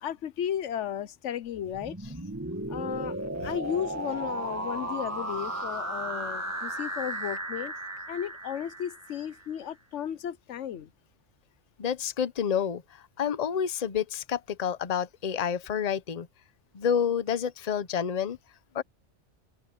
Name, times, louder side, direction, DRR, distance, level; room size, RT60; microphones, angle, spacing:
voice 1, 0.0-2.0 2.7-3.2 3.4-7.7 8.1-10.9, left 9 dB, 85° left, 1.1 m, -34 dB
sound 1, 1.5-9.5, right 1 dB, 15° right, 1.7 m, -35 dB
voice 2, 11.8-12.8 13.2-16.3 16.7-18.4 18.7-18.8, left 8 dB, 40° left, 0.8 m, -29 dB
open air
omnidirectional pair, 1.2 m